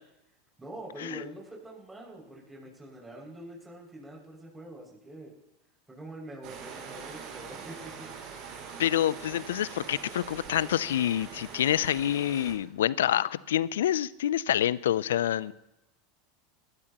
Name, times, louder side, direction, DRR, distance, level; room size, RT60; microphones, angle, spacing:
voice 1, 0.6-5.3 5.9-8.5, right 1 dB, 10° right, -3 dB, 6.3 m, -45 dB
sound 1, 6.4-12.5, right 6 dB, 55° right, 5.3 m, -43 dB
voice 2, 8.8-15.5, left 11 dB, 80° left, 20 dB, 0.5 m, -27 dB
22.0 x 16.0 x 3.0 m, 0.90 s
hypercardioid pair, 90°, 0 cm